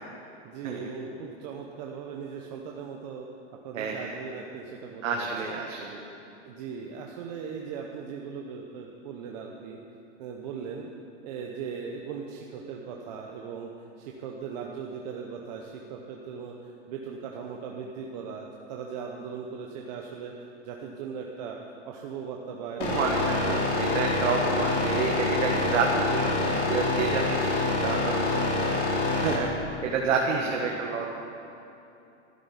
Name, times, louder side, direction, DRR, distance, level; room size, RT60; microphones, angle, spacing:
voice 1, 0.4-3.3 3.6-5.5 6.4-9.8 10.2-10.9 11.2-13.7 14.0-21.6 21.8-23.9 30.2-30.8, right 6 dB, 35° right, 0 dB, 0.8 m, -39 dB
voice 2, 3.7-4.2 5.0-6.1 22.8-27.5 27.8-28.3 28.5-29.5 29.8-31.2, right 5 dB, 70° right, 0 dB, 1.6 m, -29 dB
sound 1, 22.8-29.3, left 2 dB, 40° left, 2.8 m, -26 dB
12.5 x 7.3 x 9.8 m, 2.8 s
supercardioid pair, 165°, 38 cm